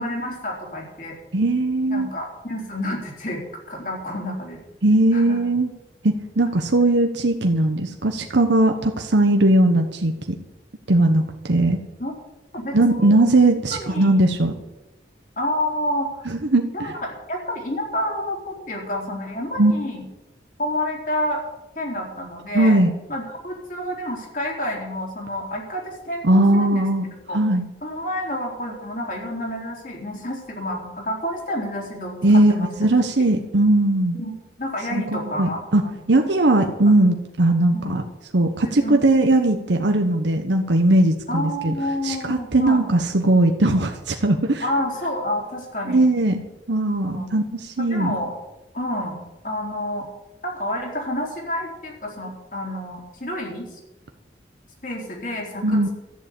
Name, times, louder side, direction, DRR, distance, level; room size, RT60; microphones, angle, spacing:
voice 1, 0.0-1.1 1.9-3.4 3.7-4.6 5.1-5.4 12.0-12.1 12.5-13.2 13.7-14.2 15.4-16.3 16.7-17.0 17.3-20.1 20.6-21.4 21.8-22.8 23.1-26.9 27.3-27.4 27.8-32.9 34.1-36.0 36.5-36.6 37.7-38.0 38.6-39.2 41.3-42.8 43.7-43.8 44.6-46.1 47.0-47.3 47.8-48.3 48.7-50.1 50.4-53.8 54.8-55.9, left 1 dB, 45° left, 0 dB, 3.7 m, -29 dB
voice 2, 1.3-2.1 4.8-5.7 6.0-10.4 10.9-11.8 12.7-14.5 16.3-16.9 19.6-19.7 22.5-22.9 26.2-27.1 27.3-27.6 32.2-34.2 34.9-35.8 36.1-38.0 38.3-41.7 42.0-44.6 45.9-46.4 46.7-48.2 55.6-55.9, right 2 dB, 70° right, 5 dB, 1.0 m, -19 dB
14.0 x 7.6 x 8.6 m, 0.99 s
head